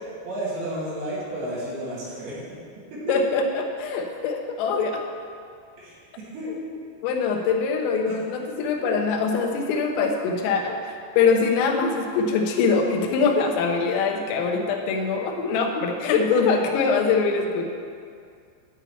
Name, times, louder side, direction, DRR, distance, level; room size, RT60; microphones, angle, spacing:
voice 1, 0.2-2.4 2.9-3.2 5.8-6.5 8.1-8.2, right 1 dB, 65° right, -7 dB, 4.3 m, -32 dB
voice 2, 3.1-5.0 7.0-17.6, left 5 dB, 85° left, 2 dB, 3.7 m, -23 dB
11.5 x 5.8 x 8.3 m, 2.3 s
omnidirectional pair, 5.9 m